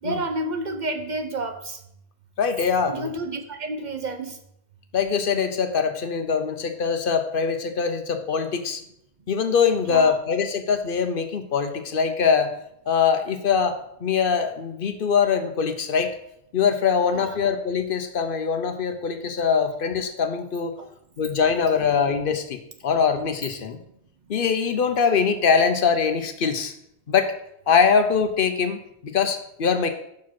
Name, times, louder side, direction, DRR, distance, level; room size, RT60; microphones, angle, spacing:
voice 1, 0.0-1.8 2.9-4.4 9.8-10.2 17.1-17.4 20.8-20.9 21.7-21.8, right 2 dB, 50° right, 7 dB, 0.7 m, -30 dB
voice 2, 2.4-3.1 4.9-8.8 9.3-12.5 12.9-16.1 16.5-20.7 21.2-23.8 24.3-26.7 27.1-27.3 27.7-29.9, left 6 dB, 60° left, 8 dB, 0.8 m, -23 dB
5.8 x 4.9 x 6.0 m, 0.76 s
omnidirectional pair, 1.1 m